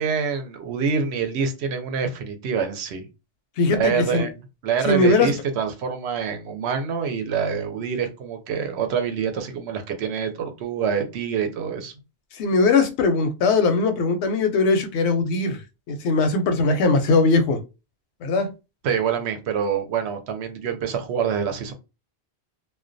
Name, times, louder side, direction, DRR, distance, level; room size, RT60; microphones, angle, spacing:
voice 1, 0.0-3.1 3.7-4.4 4.6-11.9 18.8-21.7, right 6 dB, 80° right, 0.8 m, -26 dB
voice 2, 3.6-4.3 4.8-5.3 12.3-15.6 15.9-17.6 18.2-18.5, left 3 dB, 85° left, 0.8 m, -20 dB
2.2 x 2.2 x 2.5 m
omnidirectional pair, 1.1 m